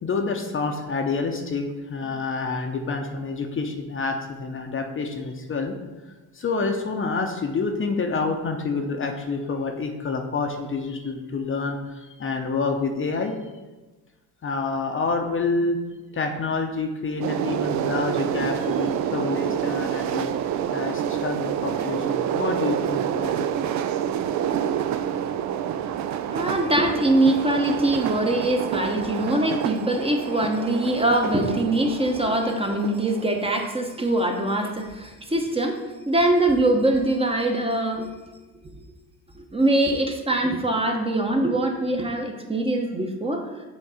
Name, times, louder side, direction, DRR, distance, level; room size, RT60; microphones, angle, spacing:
voice 1, 0.0-5.7 6.3-13.5 14.4-15.8 16.1-20.3 20.7-23.5, left 4 dB, 30° left, 4 dB, 0.8 m, -28 dB
sound 1, 17.2-33.7, right 9 dB, 50° right, 0.5 m, -28 dB
voice 2, 26.3-38.1 38.6-38.7 39.3-43.5, right 1 dB, 15° right, 3 dB, 0.9 m, -23 dB
7.2 x 3.5 x 4.9 m, 1.2 s
supercardioid pair, 85°, 38 cm